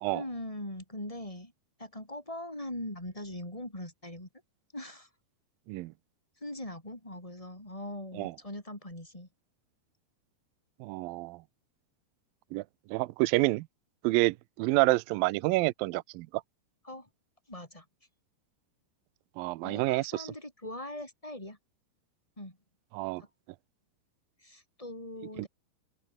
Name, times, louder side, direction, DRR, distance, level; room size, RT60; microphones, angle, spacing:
voice 1, 0.1-1.5 1.8-4.3 4.7-5.1 6.4-9.3 16.8-17.1 17.5-17.8 19.6-21.6 22.4-22.6 23.2-23.3 24.4-25.5, left 1 dB, 10° left, 6.0 m, -41 dB
voice 2, 10.8-11.4 12.5-12.6 12.9-13.7 14.0-16.3 19.4-20.3 22.9-23.2 25.4-25.5, right 20 dB, 85° right, 2.1 m, -28 dB
open air
omnidirectional pair, 4.7 m